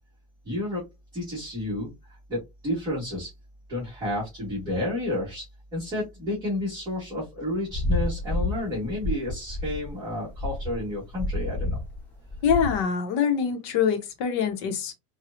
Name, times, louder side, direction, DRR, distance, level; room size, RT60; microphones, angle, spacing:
voice 1, 0.4-0.9 1.1-1.9 2.3-3.3 3.7-11.8, left 1 dB, 20° right, 1.6 m, -31 dB
sound 1, 7.7-12.8, left 1 dB, 10° left, 1.0 m, -29 dB
voice 2, 12.4-14.9, left 7 dB, 60° left, 1.0 m, -24 dB
4.3 x 2.3 x 2.6 m
supercardioid pair, 175°, 17 cm